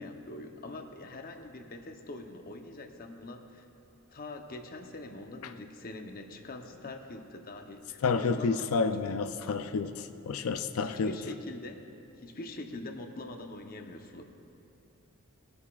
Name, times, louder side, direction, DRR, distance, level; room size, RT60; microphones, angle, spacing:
voice 1, 0.0-3.6 4.1-8.7 10.8-11.8 12.2-14.2, left 2 dB, 45° left, 4 dB, 0.8 m, -43 dB
voice 2, 8.0-11.1, left 4 dB, 75° left, 9 dB, 0.4 m, -30 dB
20.5 x 8.6 x 2.4 m, 2.8 s
head